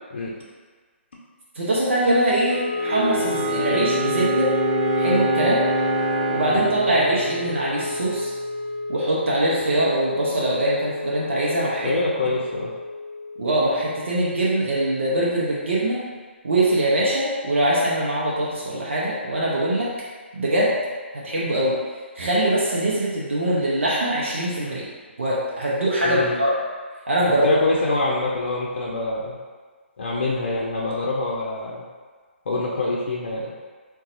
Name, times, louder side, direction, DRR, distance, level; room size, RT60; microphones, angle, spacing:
voice 1, 1.5-4.5 5.0-5.6 6.3-8.3 8.9-11.9 13.4-16.0 16.4-19.9 20.3-20.8 21.1-21.8 22.2-24.9 25.2-26.5 27.1-27.5, right 1 dB, 70° right, -6 dB, 0.7 m, -22 dB
Wind instrument woodwind instrument, 2.4-14.6, equal, 20° left, 0.6 m, -31 dB
Bowed string instrument, 2.8-8.3, right 1 dB, 10° right, 1.1 m, -25 dB
voice 2, 11.8-12.7 26.0-26.4 27.3-29.4 30.0-31.8 32.5-33.5, left 2 dB, 60° left, -4 dB, 0.5 m, -25 dB
3.9 x 2.3 x 2.6 m, 1.5 s
figure-of-eight pair, 140°, 7 cm